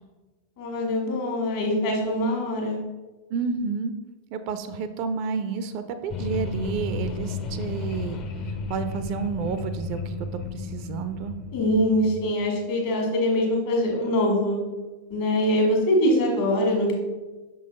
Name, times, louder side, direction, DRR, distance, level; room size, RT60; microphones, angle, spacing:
voice 1, 0.6-2.8 11.5-14.6 15.1-16.9, left 1 dB, 50° left, 0 dB, 1.7 m, -23 dB
voice 2, 3.3-3.9 4.3-8.2 8.7-11.4, right 5 dB, 45° right, 10 dB, 0.4 m, -30 dB
sound 1, 6.1-12.3, left 4 dB, 35° left, 0.6 m, -33 dB
6.2 x 3.8 x 4.0 m, 1.2 s
figure-of-eight pair, 90°, 0 cm